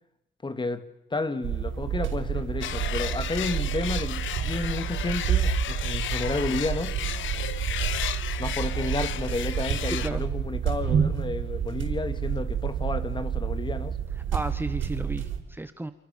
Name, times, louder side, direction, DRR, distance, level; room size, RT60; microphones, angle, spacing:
voice 1, 0.4-0.8 1.1-6.9 8.4-14.0, left 3 dB, 25° left, 2.8 m, -31 dB
sound 1, 1.4-15.4, right 8 dB, 75° right, 6.1 m, -29 dB
sound 2, 2.6-10.1, left 11 dB, 75° left, 1.5 m, -34 dB
voice 2, 9.9-10.2 14.3-15.9, right 2 dB, 10° right, 1.4 m, -33 dB
29.0 x 28.5 x 7.0 m
cardioid pair, 90°, 20 cm